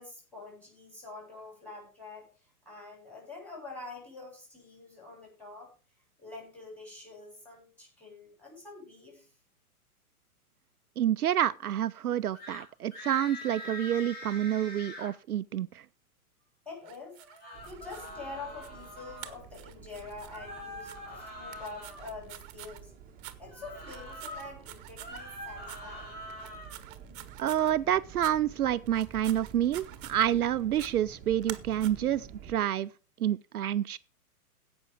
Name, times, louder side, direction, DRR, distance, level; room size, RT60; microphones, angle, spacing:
voice 1, 0.0-2.3 2.7-5.7 6.2-9.3 16.7-17.2 17.6-22.9 23.4-26.2, left 3 dB, 5° left, 7.1 m, -46 dB
voice 2, 11.0-15.8 27.4-32.9 33.2-34.0, right 11 dB, 70° right, 0.6 m, -28 dB
sound 1, 12.3-12.6 12.9-15.1 17.2-19.3 20.3-22.1 23.5-24.5 24.9-26.8, left 1 dB, 20° left, 5.9 m, -44 dB
sound 2, 16.8-18.1 18.6-18.9 19.2-20.4 20.8-21.0 21.5-22.8 23.2-23.4 23.8-25.2 25.6-25.8 26.3-27.7 28.2-28.3 28.9-30.4 30.8-30.9 31.4-31.9, right 14 dB, 35° right, 1.3 m, -47 dB
sound 3, 17.5-32.6, right 7 dB, 20° right, 1.3 m, -50 dB
16.5 x 6.1 x 5.0 m
figure-of-eight pair, 115°, 45 cm